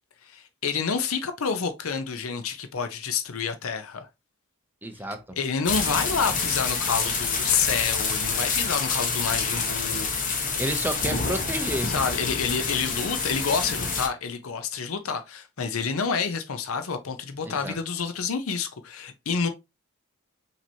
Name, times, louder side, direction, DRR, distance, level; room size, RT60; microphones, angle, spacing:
voice 1, 0.3-4.1 5.3-10.1 11.9-19.5, left 6 dB, 75° left, 0.6 m, -28 dB
voice 2, 4.8-5.4 10.6-11.9 17.5-17.8, right 1 dB, 10° right, 0.5 m, -30 dB
sound 1, 5.6-14.1, left 4 dB, 40° left, 1.0 m, -27 dB
6.0 x 2.8 x 2.7 m
head